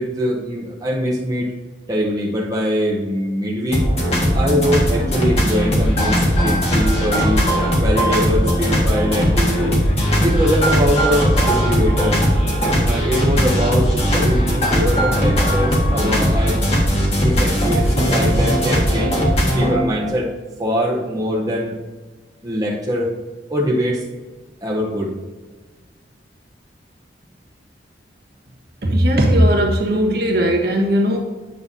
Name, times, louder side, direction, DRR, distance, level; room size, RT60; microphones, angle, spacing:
voice 1, 0.0-1.5 1.9-3.8 4.3-7.5 7.8-9.8 10.2-12.3 12.8-16.6 17.2-19.1 19.6-20.3 20.6-21.8 22.4-23.1 23.5-24.0 24.6-25.1, equal, 20° right, -4 dB, 0.8 m, -22 dB
sound 1, 3.7-19.7, equal, 35° left, 1.7 m, -18 dB
voice 2, 28.8-31.2, equal, 55° right, 0 dB, 1.3 m, -17 dB
9.0 x 6.7 x 2.7 m, 1.3 s
head